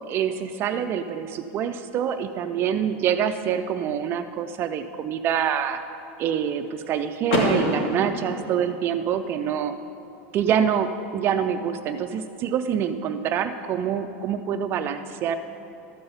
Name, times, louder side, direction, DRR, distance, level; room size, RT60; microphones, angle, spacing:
voice 1, 0.1-5.8 6.2-9.7 10.3-15.4, right 8 dB, 35° right, 8 dB, 0.4 m, -26 dB
Car / Door, 7.3-9.2, left 1 dB, 65° left, 2.2 m, -26 dB
12.5 x 5.4 x 7.1 m, 2.9 s
supercardioid pair, 145°, 7 cm